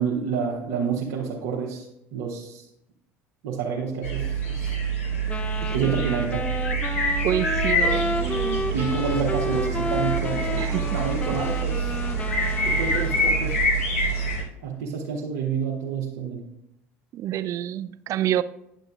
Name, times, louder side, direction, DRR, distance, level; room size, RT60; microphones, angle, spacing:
voice 1, 0.0-1.8 2.1-2.6 3.4-4.8 5.7-6.5 8.7-11.9 12.3-13.6 14.6-16.4, right 6 dB, 70° right, 1.0 m, -29 dB
sound 1, 4.0-14.4, right 2 dB, 85° left, 1.1 m, -26 dB
Wind instrument woodwind instrument, 5.3-13.8, left 2 dB, 15° left, 0.5 m, -32 dB
voice 2, 7.2-8.8 10.6-10.8 17.1-18.4, right 11 dB, 50° right, 0.3 m, -28 dB
9.9 x 6.5 x 2.4 m
hypercardioid pair, 70°, 7 cm